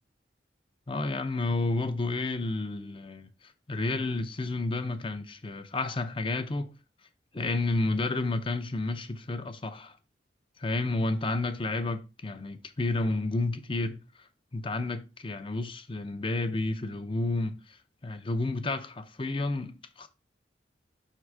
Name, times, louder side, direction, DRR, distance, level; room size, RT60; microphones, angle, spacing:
voice 1, 0.9-3.3 3.7-6.7 7.3-10.0 10.6-14.3 14.5-20.1, left 2 dB, 30° left, 0.6 m, -31 dB
5.5 x 3.8 x 4.7 m
head